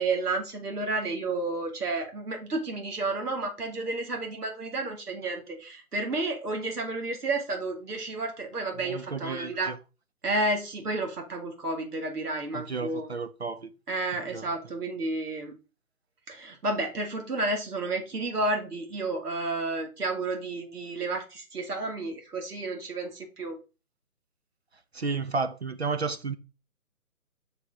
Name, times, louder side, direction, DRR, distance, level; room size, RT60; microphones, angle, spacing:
voice 1, 0.0-9.7 10.2-13.1 13.9-15.6 16.3-23.6, right 2 dB, 90° right, 2.1 m, -31 dB
voice 2, 8.8-9.8 12.5-13.7 14.3-14.4 24.9-26.4, right 4 dB, 45° right, 0.5 m, -32 dB
6.3 x 5.5 x 4.0 m
hypercardioid pair, 165°, 45 cm